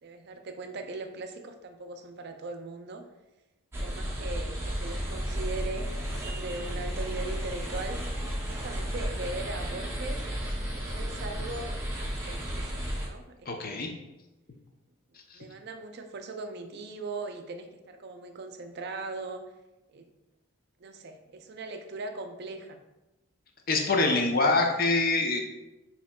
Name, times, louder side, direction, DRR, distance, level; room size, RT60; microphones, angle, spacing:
voice 1, 0.0-3.0 3.8-8.2 8.5-10.3 10.6-11.9 12.2-14.1 15.3-19.4 19.9-20.1 20.8-22.8, right 3 dB, 50° right, 6 dB, 0.4 m, -40 dB
sound 1, 3.7-13.1, equal, 10° right, 0.7 m, -33 dB
Bells in Kotor, 5.2-11.3, equal, 10° left, 1.2 m, -44 dB
voice 2, 13.5-13.9 15.3-15.4 23.7-25.4, left 3 dB, 45° left, 3 dB, 0.5 m, -25 dB
6.5 x 2.9 x 2.3 m, 1.0 s
head